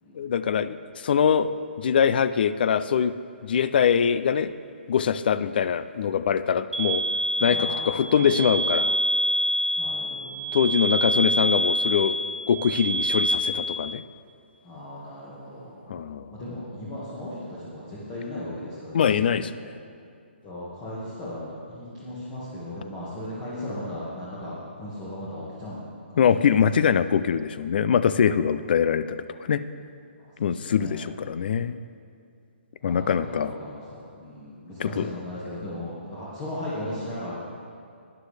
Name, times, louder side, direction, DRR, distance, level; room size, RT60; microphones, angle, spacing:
voice 1, 0.1-3.2 3.4-4.5 4.9-7.1 7.4-8.9 10.5-12.2 12.5-14.0 15.9-16.4 18.9-19.5 26.2-29.6 30.4-31.8 32.8-33.5 34.8-35.1, left 7 dB, 50° left, 14 dB, 0.4 m, -23 dB
sound 1, 6.7-13.3, right 1 dB, 5° right, 1.5 m, -26 dB
voice 2, 7.5-8.5 9.8-10.5 14.6-16.0 16.3-19.7 20.4-26.9 28.2-28.3 30.2-30.3 30.8-31.1 32.8-37.3, left 1 dB, 20° left, -9 dB, 1.7 m, -37 dB
12.5 x 9.8 x 3.3 m, 2.4 s
hypercardioid pair, 155°, 6 cm